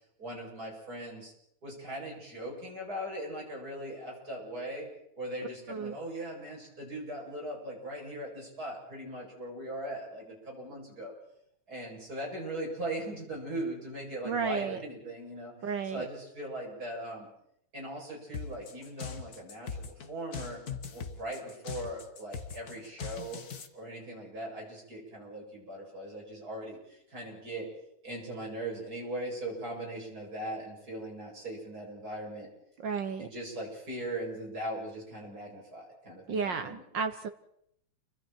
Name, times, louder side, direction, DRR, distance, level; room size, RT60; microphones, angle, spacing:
voice 1, 0.2-1.3 1.6-4.9 5.2-11.1 11.7-15.5 15.8-17.3 17.7-20.6 20.9-23.4 23.7-27.7 28.0-32.5 33.2-36.8, right 1 dB, 30° right, -2 dB, 8.3 m, -39 dB
voice 2, 14.2-14.8 15.6-16.1 32.8-33.3 36.3-37.3, right 5 dB, 65° right, 9 dB, 1.1 m, -32 dB
sound 1, 18.3-23.7, left 6 dB, 45° left, 1.4 m, -40 dB
30.0 x 24.5 x 4.6 m, 0.74 s
omnidirectional pair, 3.3 m